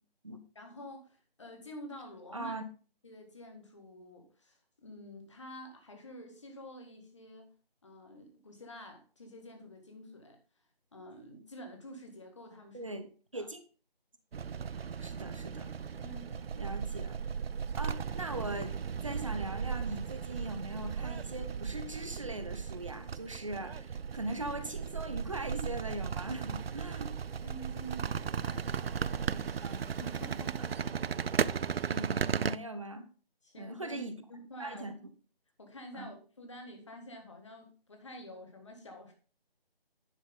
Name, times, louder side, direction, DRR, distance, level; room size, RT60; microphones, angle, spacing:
voice 1, 0.6-2.5 3.0-7.5 7.8-10.4 10.9-13.0 13.3-13.5 16.0-16.4 27.4-30.7 33.4-34.9 35.6-39.1, equal, 30° left, 4 dB, 1.8 m, -49 dB
voice 2, 2.3-2.6 12.7-13.1 13.3-13.6 15.0-15.7 16.5-17.2 17.8-27.1 29.6-29.8 31.5-33.1 33.6-34.2 34.6-34.9 35.9-36.1, right 1 dB, 30° right, 9 dB, 0.9 m, -40 dB
sound 1, 14.3-32.6, right 6 dB, 70° right, 0.5 m, -36 dB
10.5 x 6.2 x 3.8 m, 0.38 s
figure-of-eight pair, 170°, 30 cm